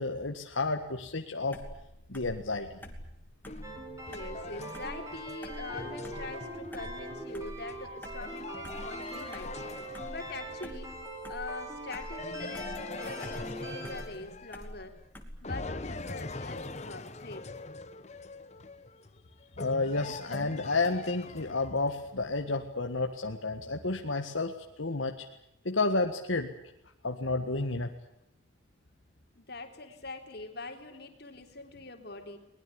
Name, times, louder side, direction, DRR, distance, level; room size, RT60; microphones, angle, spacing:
voice 1, 0.0-1.6 2.1-2.8 19.6-24.5 24.8-25.3 25.7-26.5 27.0-27.9, left 3 dB, 80° left, 4 dB, 1.7 m, -31 dB
sound 1, 1.5-15.7, equal, 10° left, 2.6 m, -48 dB
sound 2, 3.5-10.9 12.2-15.0 15.4-21.9, left 3 dB, 35° left, 1.0 m, -43 dB
sound 3, 3.6-14.0, right 1 dB, 15° right, 5.1 m, -42 dB
voice 2, 4.0-9.6 10.1-11.0 11.3-15.0 15.4-17.5 29.4-32.4, left 3 dB, 55° left, 5 dB, 3.5 m, -43 dB
22.0 x 20.5 x 9.6 m, 0.81 s
head